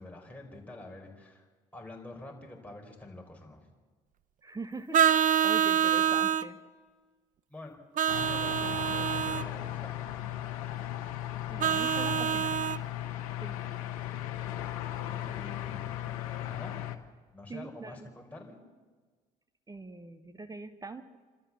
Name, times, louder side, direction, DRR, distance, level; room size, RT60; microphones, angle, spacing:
voice 1, 0.0-1.5 1.7-3.7 7.5-7.8 8.1-10.1 12.0-12.4 15.1-16.0 16.4-16.9 17.3-18.6, left 2 dB, 10° left, 0 dB, 4.6 m, -46 dB
voice 2, 4.4-6.6 11.5-12.6 13.0-13.6 17.5-18.1 19.7-21.0, right 3 dB, 20° right, 9 dB, 1.7 m, -43 dB
Vehicle horn car horn honking, 4.9-6.5 8.0-9.5 11.6-12.8, right 9 dB, 50° right, 0.7 m, -26 dB
sound 1, 8.1-17.0, left 12 dB, 90° left, 1.0 m, -36 dB
27.5 x 13.0 x 7.3 m, 1.4 s
hypercardioid pair, 65°, 18 cm